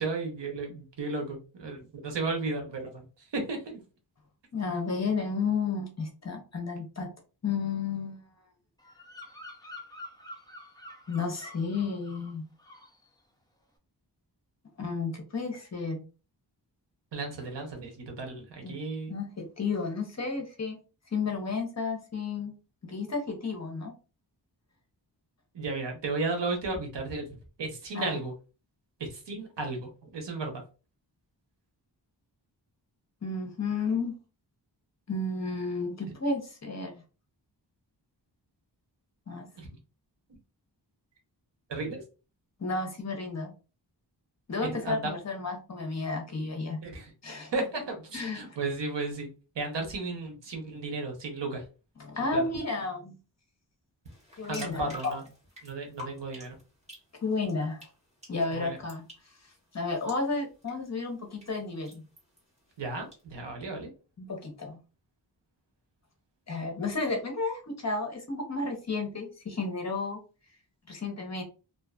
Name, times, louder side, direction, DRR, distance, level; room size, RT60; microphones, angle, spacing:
voice 1, 0.0-3.8 17.1-19.2 25.5-27.3 27.6-28.3 29.0-30.6 39.6-39.7 41.7-42.0 44.6-45.1 46.8-47.1 47.5-49.3 49.5-51.6 52.3-52.4 54.5-55.2 55.6-56.5 58.5-58.8 62.8-63.9, right 3 dB, 85° right, 3 dB, 0.9 m, -34 dB
voice 2, 4.5-7.1 7.4-8.2 11.1-12.4 14.8-16.0 18.6-18.7 19.1-20.8 21.1-22.6 22.8-23.9 27.9-28.1 33.2-34.1 35.1-37.0 39.3-39.5 42.6-43.5 44.5-46.8 47.2-47.5 48.1-48.6 52.0-53.1 54.4-55.1 57.2-57.9 58.3-59.0 59.7-62.0 64.2-64.8 66.5-70.2 70.9-71.4, left 4 dB, 40° left, 3 dB, 0.8 m, -32 dB
Bird vocalization bird call bird song, 8.8-12.3 12.6-13.0, left 1 dB, 10° left, 0.4 m, -47 dB
sound 1, 54.0-63.2, left 1 dB, 15° right, 1.4 m, -51 dB
2.7 x 2.3 x 2.3 m, 0.33 s
wide cardioid pair, 110°, 41 cm